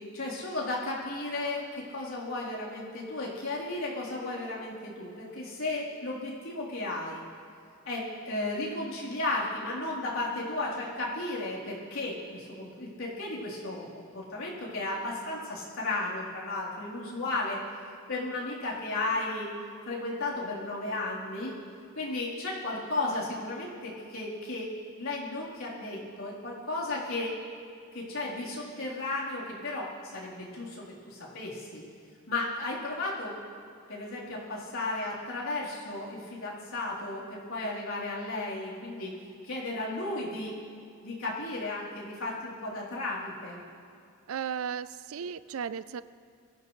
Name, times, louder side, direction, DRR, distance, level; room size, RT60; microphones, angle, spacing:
voice 1, 0.1-7.2 7.9-17.6 18.1-19.5 19.9-21.5 22.0-27.3 27.9-31.8 32.3-33.3 33.9-39.1 39.4-40.5 41.0-43.6, left 2 dB, 85° left, -6 dB, 3.7 m, -34 dB
voice 2, 44.3-46.0, right 7 dB, 90° right, 15 dB, 0.5 m, -35 dB
23.0 x 15.5 x 3.2 m, 2.4 s
head